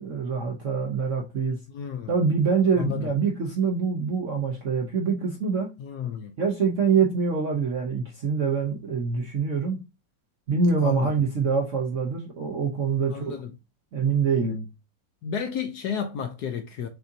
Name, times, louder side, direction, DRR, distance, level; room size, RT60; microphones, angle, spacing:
voice 1, 0.0-1.6 2.1-5.7 6.4-9.8 10.5-13.3 13.9-14.7, right 5 dB, 60° right, 0.8 m, -25 dB
voice 2, 1.7-2.2 2.8-3.1 5.8-6.3 10.8-11.1 13.1-13.5 15.2-16.9, left 8 dB, 70° left, 1.0 m, -32 dB
6.1 x 2.7 x 2.6 m
omnidirectional pair, 2.1 m